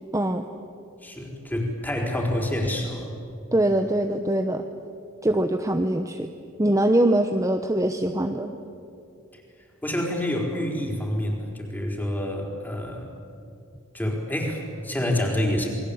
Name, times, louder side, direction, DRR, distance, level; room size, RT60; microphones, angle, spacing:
voice 1, 0.1-0.4 3.5-4.6 5.2-6.3 6.6-8.5, right 1 dB, 15° right, 5 dB, 1.0 m, -23 dB
voice 2, 1.0-3.1 9.3-9.4 9.8-13.1 13.9-15.7, left 1 dB, 10° left, 0 dB, 4.5 m, -27 dB
28.0 x 21.5 x 8.8 m, 2.6 s
head